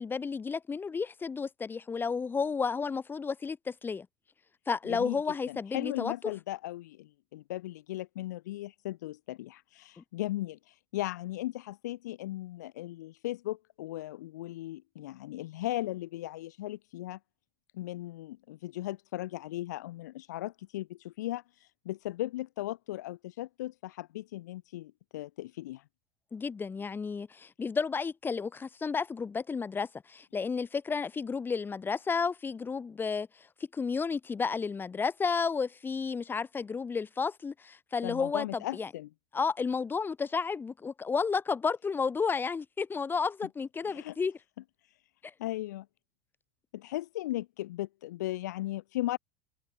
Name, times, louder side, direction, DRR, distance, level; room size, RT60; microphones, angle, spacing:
voice 1, 0.0-4.1 4.7-6.3 10.0-10.1 26.3-33.3 33.7-38.9 39.3-44.4, left 5 dB, 20° left, 7.4 m, -32 dB
voice 2, 4.9-17.2 17.7-25.8 38.0-39.1 43.8-44.1 45.4-45.9 46.7-49.2, left 16 dB, 85° left, 6.1 m, -37 dB
supercardioid pair, 100°, 9 cm